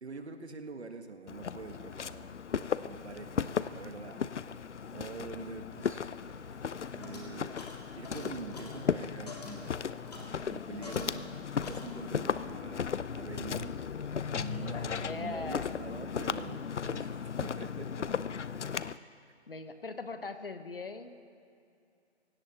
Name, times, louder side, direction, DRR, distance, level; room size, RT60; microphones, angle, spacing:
voice 1, 0.0-4.3 4.9-6.2 6.9-7.7 8.0-9.8 10.5-13.8 14.3-18.0, right 4 dB, 70° right, 7 dB, 1.4 m, -45 dB
Walk footsteps, 1.3-19.0, left 7 dB, 90° left, 0.6 m, -36 dB
sound 1, 6.2-11.4 11.6-12.3, left 2 dB, 35° left, 2.2 m, -49 dB
voice 2, 14.3-15.6 19.5-21.1, left 3 dB, 55° left, 9 dB, 1.1 m, -41 dB
26.5 x 17.0 x 2.9 m, 2.5 s
figure-of-eight pair, 165°, 34 cm